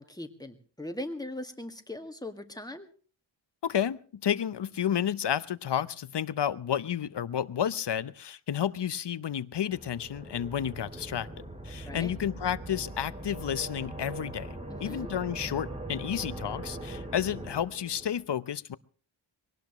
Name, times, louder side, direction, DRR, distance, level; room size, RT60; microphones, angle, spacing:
voice 1, 0.0-2.9 11.9-12.1 14.7-15.1, left 1 dB, 10° left, 6 dB, 1.9 m, -40 dB
voice 2, 3.6-11.3 11.6-18.8, left 9 dB, 60° left, 16 dB, 0.8 m, -31 dB
sound 1, 9.7-18.2, right 1 dB, 15° right, 2.7 m, -41 dB
22.5 x 18.0 x 3.1 m, 0.40 s
wide cardioid pair, 100°, 46 cm